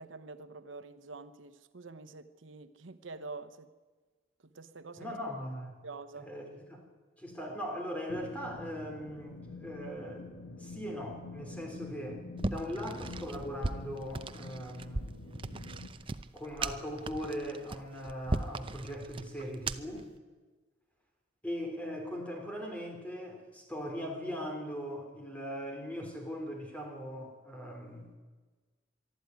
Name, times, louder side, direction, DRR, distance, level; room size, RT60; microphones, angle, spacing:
voice 1, 0.0-3.7 4.4-5.1 5.8-6.3, right 3 dB, 85° right, 1.0 m, -46 dB
voice 2, 5.0-5.8 6.1-6.8 7.2-10.2 10.6-15.2 16.3-20.1 21.4-28.1, equal, 5° left, 3.4 m, -40 dB
sound 1, 8.1-15.9, left 2 dB, 80° left, 2.0 m, -47 dB
sound 2, 12.4-20.0, right 2 dB, 30° right, 0.7 m, -38 dB
23.5 x 12.5 x 9.5 m
head